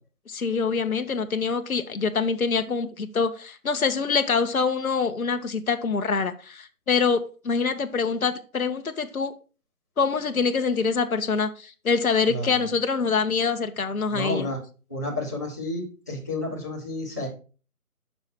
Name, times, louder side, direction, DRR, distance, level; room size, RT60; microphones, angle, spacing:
voice 1, 0.3-9.3 10.0-14.5, left 5 dB, 70° left, 0.9 m, -25 dB
voice 2, 14.1-14.6 14.9-17.3, left 1 dB, 10° left, 1.0 m, -31 dB
6.8 x 5.6 x 4.3 m
figure-of-eight pair, 165°, 44 cm